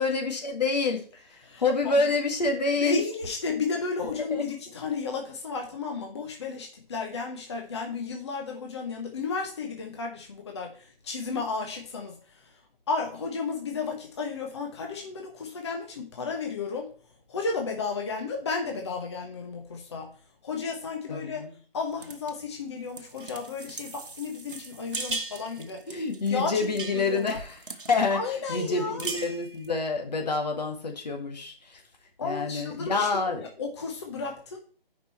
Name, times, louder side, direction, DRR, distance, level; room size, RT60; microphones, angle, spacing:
voice 1, 0.0-3.0 4.3-4.4 21.1-21.5 25.9-27.6 27.9-31.8 32.2-33.4, left 3 dB, 45° left, 3 dB, 1.9 m, -27 dB
voice 2, 1.4-2.0 2.8-12.5 12.9-16.9 17.3-20.1 20.4-21.4 21.7-25.8 26.3-27.4 27.8-29.1 32.2-34.6, left 4 dB, 30° left, 2 dB, 1.1 m, -33 dB
sound 1, 22.0-22.4 22.9-28.1 28.4-28.5 28.8-29.8, right 3 dB, 60° right, 1.2 m, -39 dB
9.6 x 5.3 x 4.4 m, 0.42 s
figure-of-eight pair, 150°, 29 cm